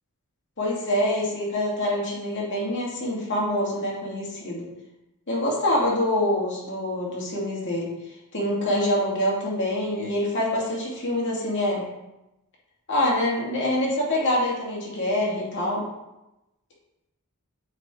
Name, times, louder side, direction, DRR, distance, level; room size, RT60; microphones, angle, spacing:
voice 1, 0.6-4.7 5.3-7.9 8.3-11.9 12.9-15.9, left 1 dB, 55° left, -5 dB, 2.4 m, -25 dB
8.1 x 4.2 x 4.5 m, 0.95 s
head